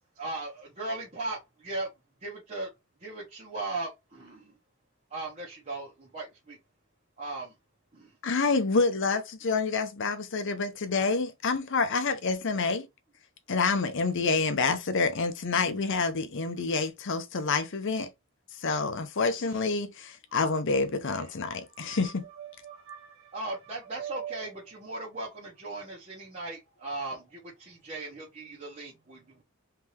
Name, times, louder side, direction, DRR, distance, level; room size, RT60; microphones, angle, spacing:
voice 1, 0.2-1.9 2.2-2.7 3.0-4.5 5.1-6.6 7.2-7.5 7.9-8.1 23.3-29.4, right 2 dB, 35° right, 1.3 m, -38 dB
voice 2, 8.2-12.9 13.5-18.1 18.6-22.3, left 4 dB, 60° left, 0.7 m, -28 dB
voice 3, 21.5-23.4 23.6-24.5 26.8-26.9, right 10 dB, 70° right, 0.9 m, -43 dB
3.6 x 3.3 x 3.0 m
head